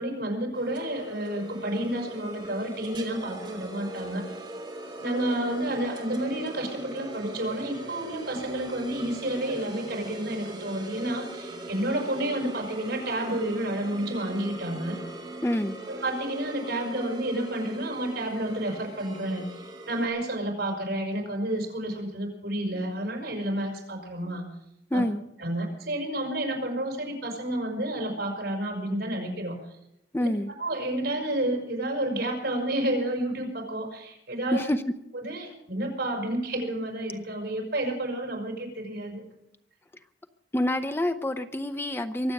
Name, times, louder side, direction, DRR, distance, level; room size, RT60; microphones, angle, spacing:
voice 1, 0.0-4.4 5.0-15.0 15.9-24.5 24.9-25.0 25.4-29.6 30.2-30.3 30.6-34.6 35.2-39.2, right 1 dB, 70° right, 1 dB, 5.7 m, -30 dB
sound 1, 0.5-20.1, right 1 dB, 30° right, 3.1 m, -40 dB
voice 2, 15.4-15.8 24.9-25.2 30.1-30.5 34.5-34.8 40.5-42.3, left 1 dB, 15° left, 9 dB, 0.6 m, -27 dB
23.5 x 8.2 x 6.5 m, 0.81 s
head